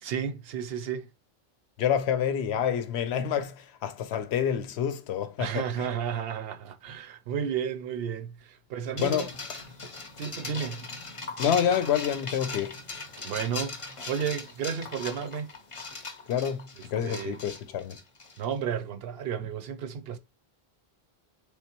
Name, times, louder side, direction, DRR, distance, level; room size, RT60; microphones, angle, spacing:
voice 1, 0.0-1.1 5.4-9.3 10.2-10.9 13.2-15.5 17.0-17.4 18.4-20.2, right 8 dB, 70° right, 0.8 m, -32 dB
voice 2, 1.8-5.7 9.0-9.3 11.4-12.8 16.3-18.0, left 9 dB, 85° left, 0.9 m, -28 dB
sound 1, 9.0-18.5, left 3 dB, 35° left, 0.6 m, -39 dB
3.6 x 3.2 x 2.8 m
omnidirectional pair, 1.1 m